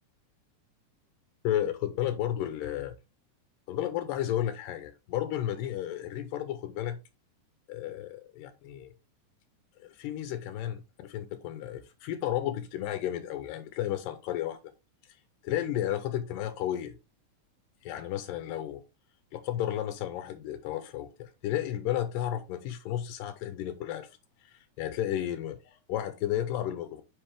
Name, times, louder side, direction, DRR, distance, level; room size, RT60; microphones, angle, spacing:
voice 1, 1.4-3.0 3.7-7.0 7.7-8.9 9.8-14.6 15.1-15.2 15.4-16.9 17.8-18.8 19.3-24.1 24.4-27.0, left 11 dB, 85° left, 2.4 m, -33 dB
8.9 x 4.3 x 3.3 m
omnidirectional pair, 3.9 m